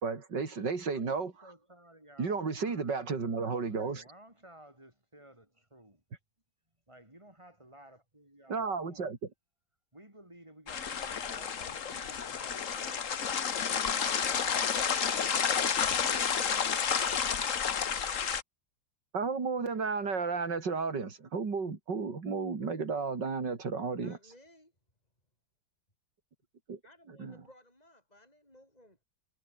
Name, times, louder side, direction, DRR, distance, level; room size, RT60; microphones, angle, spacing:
voice 1, 0.0-1.3 2.2-4.0 8.5-9.2 19.1-24.2 26.7-26.8 27.2-27.3, right 4 dB, 90° right, 3.6 m, -33 dB
voice 2, 1.4-6.0 6.9-9.1 9.9-13.5 13.9-15.5 15.9-16.5, right 1 dB, 15° right, 6.5 m, -56 dB
sound 1, 10.7-18.4, left 7 dB, 50° left, 1.6 m, -30 dB
voice 3, 23.9-24.7 26.8-29.0, left 1 dB, 20° left, 7.8 m, -59 dB
omnidirectional pair, 1.9 m